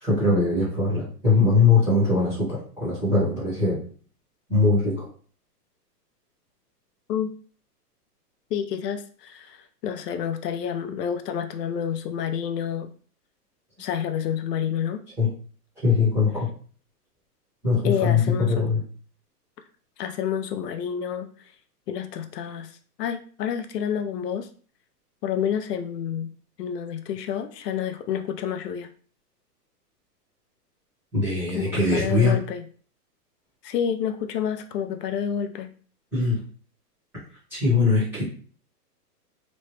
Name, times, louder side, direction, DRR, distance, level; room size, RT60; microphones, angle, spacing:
voice 1, 0.0-3.8 4.5-5.1 15.2-15.3 15.8-16.5 17.6-18.8 31.1-32.4 36.1-36.4 37.5-38.2, left 3 dB, 5° right, -12 dB, 0.7 m, -21 dB
voice 2, 8.5-12.9 13.8-15.0 17.8-18.8 20.0-21.5 21.9-24.5 25.2-26.3 26.6-28.9 31.5-32.6 33.6-35.7, left 8 dB, 75° left, 8 dB, 0.5 m, -29 dB
3.0 x 2.1 x 3.0 m, 0.43 s
hypercardioid pair, 165°, 48 cm